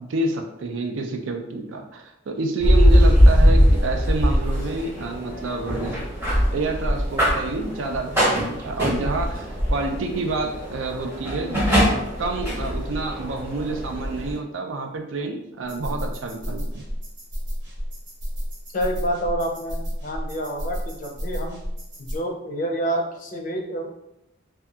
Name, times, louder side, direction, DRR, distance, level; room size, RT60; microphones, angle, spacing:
voice 1, 0.0-6.0 6.5-16.8, right 2 dB, 80° right, 3 dB, 0.4 m, -28 dB
sound 1, 2.6-14.4, equal, 10° right, 0.7 m, -21 dB
sound 2, 15.7-22.2, equal, 65° right, 0.9 m, -31 dB
voice 2, 18.7-21.6 22.0-23.9, right 1 dB, 40° left, 2 dB, 0.4 m, -28 dB
2.6 x 2.3 x 2.3 m, 0.85 s
head